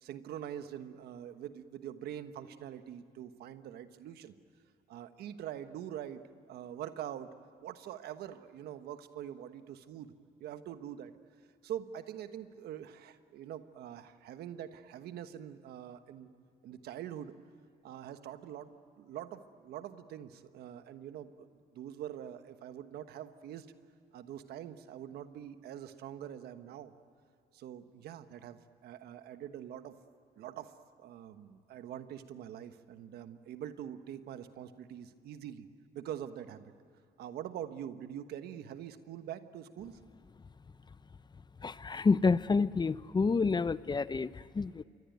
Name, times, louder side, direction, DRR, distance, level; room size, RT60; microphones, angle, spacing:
voice 1, 0.0-4.3 4.9-6.2 6.5-7.3 7.6-10.1 10.4-11.1 11.6-16.3 16.6-17.3 17.8-18.7 19.0-21.5 21.7-23.7 24.1-26.9 27.5-29.9 30.4-35.7 35.9-36.7 37.2-40.0, right 10 dB, 80° right, 10 dB, 1.3 m, -44 dB
voice 2, 41.6-44.8, left 4 dB, 25° left, 16 dB, 0.7 m, -29 dB
27.0 x 23.0 x 9.3 m, 2.5 s
cardioid pair, 80°, 16 cm